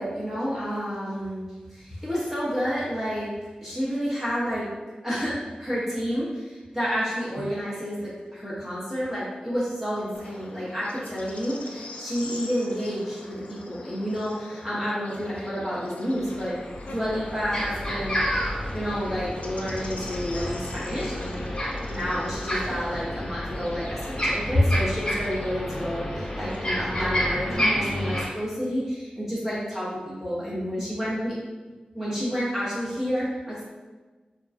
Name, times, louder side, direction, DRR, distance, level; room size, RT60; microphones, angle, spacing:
voice 1, 0.0-1.4 1.7-3.3 3.6-4.7 5.0-16.6 16.8-18.2 18.7-21.5 21.9-31.3 31.9-33.6, equal, 15° right, -10 dB, 1.1 m, -29 dB
Bird / Insect, 10.1-27.5, left 2 dB, 60° left, 0.3 m, -43 dB
sound 1, 16.2-16.3 16.6-28.2, equal, 30° left, 1.1 m, -30 dB
3.6 x 2.3 x 2.6 m, 1.3 s
wide cardioid pair, 95°, 3 cm